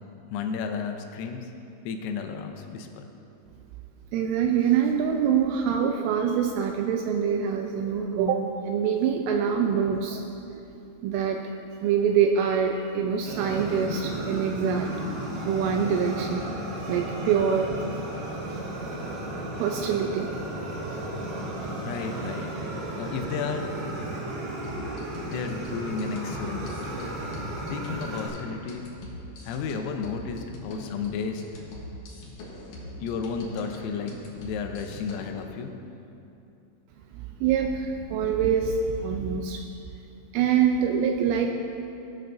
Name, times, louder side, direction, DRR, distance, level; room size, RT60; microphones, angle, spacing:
voice 1, 0.3-1.5 1.9-3.1 21.6-22.5 23.0-23.7 25.2-26.9 27.7-28.9 29.5-31.4 33.0-34.1 34.4-35.7, left 5 dB, 85° left, 5 dB, 3.4 m, -33 dB
voice 2, 4.1-10.2 11.0-11.4 11.8-14.9 15.5-16.5 16.9-18.0 19.6-20.3 20.9-21.0 37.1-39.6 40.3-41.5, right 7 dB, 85° right, 3 dB, 2.9 m, -25 dB
Fire, 13.3-28.3, right 1 dB, 60° right, 3.3 m, -34 dB
sound 1, 24.6-35.4, left 1 dB, 70° left, 2.0 m, -42 dB
17.5 x 8.8 x 2.6 m, 2.7 s
omnidirectional pair, 5.9 m